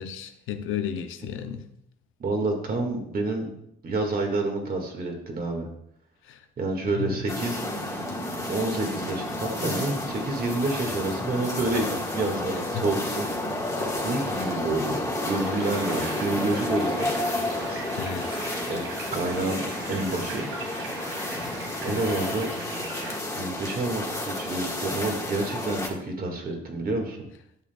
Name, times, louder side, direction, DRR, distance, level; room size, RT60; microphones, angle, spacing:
voice 1, 0.0-1.7 2.4-2.5 6.3-6.4 7.0-7.2 12.7-12.8 17.9-18.5 21.9-22.1, left 8 dB, 85° left, 0.7 m, -33 dB
voice 2, 2.2-3.5 3.8-5.7 6.6-7.6 8.5-13.3 14.0-17.2 17.7-17.8 18.7-18.8 19.1-20.5 21.8-22.5 23.3-27.2, right 2 dB, 45° right, 1.9 m, -28 dB
sound 1, 7.3-25.9, left 1 dB, 15° left, 1.7 m, -31 dB
sound 2, 15.4-23.1, right 3 dB, 85° right, 2.0 m, -40 dB
11.5 x 6.5 x 2.4 m
cardioid pair, 90°, 20 cm